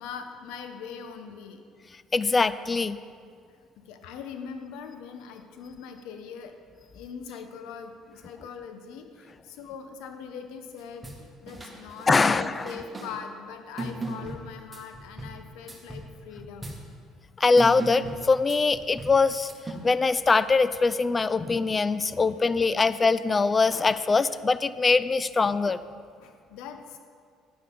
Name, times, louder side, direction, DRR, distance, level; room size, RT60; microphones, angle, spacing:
voice 1, 0.0-1.6 3.9-6.5 6.9-16.7 26.2-27.0, left 6 dB, 75° left, 7 dB, 1.0 m, -41 dB
voice 2, 2.1-3.0 12.1-12.7 17.4-19.5 19.8-25.8, left 4 dB, 30° left, 15 dB, 0.4 m, -22 dB
sound 1, 10.8-11.2 11.5-13.1 13.8-15.4 15.7-16.1 16.4-16.8 17.6-19.2 19.5-19.7, right 1 dB, 15° right, 2.0 m, -37 dB
10.0 x 10.0 x 3.8 m, 2.2 s
supercardioid pair, 75°, 0 cm